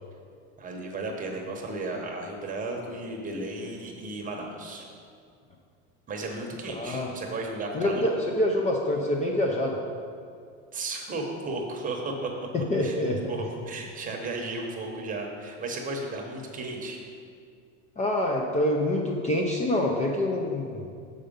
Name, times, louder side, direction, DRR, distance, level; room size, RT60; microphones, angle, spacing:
voice 1, 0.6-4.9 6.1-8.1 10.7-12.5 12.8-13.0 13.3-17.0, right 2 dB, 25° right, 1 dB, 1.0 m, -34 dB
voice 2, 6.7-7.1 7.7-9.8 12.5-13.2 18.0-20.8, left 1 dB, 20° left, 0 dB, 0.5 m, -26 dB
6.7 x 5.0 x 5.2 m, 2.3 s
supercardioid pair, 135°, 35 cm